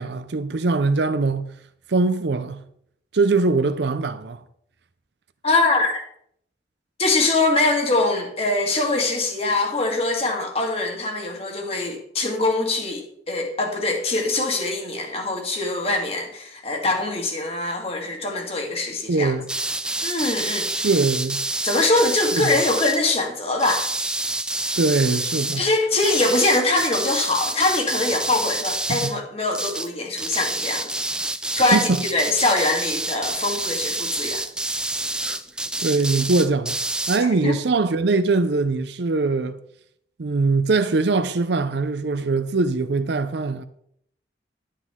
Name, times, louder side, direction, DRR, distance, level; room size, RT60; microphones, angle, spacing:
voice 1, 0.0-1.5 1.9-2.6 3.1-4.4 19.1-19.5 20.8-21.4 22.3-22.6 24.8-25.7 28.9-29.1 31.7-32.0 35.2-35.4 35.8-36.8 37.1-39.6 40.2-43.7, right 3 dB, 65° right, 0.5 m, -22 dB
voice 2, 5.4-6.0 7.0-19.3 20.0-20.9 21.6-23.9 25.6-30.9 31.5-34.4 37.2-37.6, left 2 dB, 30° left, 1.9 m, -23 dB
sound 1, 19.5-23.0 23.6-25.6 26.0-29.2 29.5-29.9 30.2-37.2, right 2 dB, 5° right, 0.4 m, -28 dB
12.0 x 8.3 x 3.7 m
head